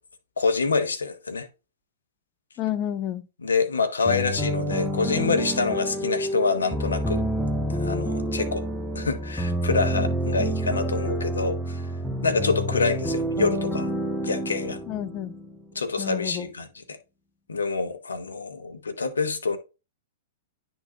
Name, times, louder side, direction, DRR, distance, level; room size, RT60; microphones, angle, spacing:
voice 1, 0.4-1.5 3.4-7.2 7.7-8.6 8.9-11.9 12.2-13.9 14.2-14.8 15.7-17.0 17.5-19.6, left 4 dB, 85° left, 1.1 m, -26 dB
voice 2, 2.6-3.2 9.9-10.4 14.9-15.3 16.0-16.5, left 11 dB, 35° left, 0.7 m, -31 dB
sound 1, 4.0-15.8, equal, 5° right, 0.9 m, -28 dB
10.0 x 4.0 x 2.9 m
hypercardioid pair, 110°, 0 cm